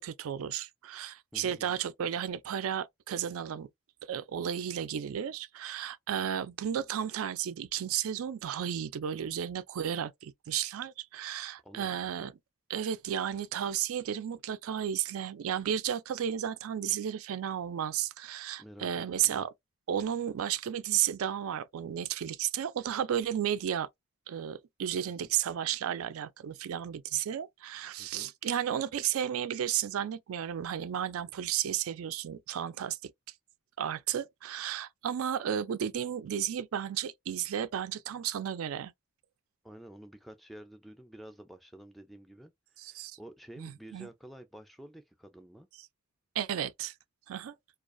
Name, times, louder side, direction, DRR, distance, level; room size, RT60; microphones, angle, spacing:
voice 1, 0.0-3.7 4.1-12.3 12.7-19.5 19.9-23.9 24.3-33.1 33.8-38.9 42.8-43.2 43.6-44.1 46.4-46.9 47.3-47.5, right 9 dB, 75° right, 0.4 m, -33 dB
voice 2, 1.3-1.8 11.6-12.1 18.6-19.5 25.1-25.3 28.0-28.3 39.6-42.5 42.8-45.7, right 1 dB, ahead, 0.3 m, -50 dB
2.4 x 2.3 x 2.4 m
head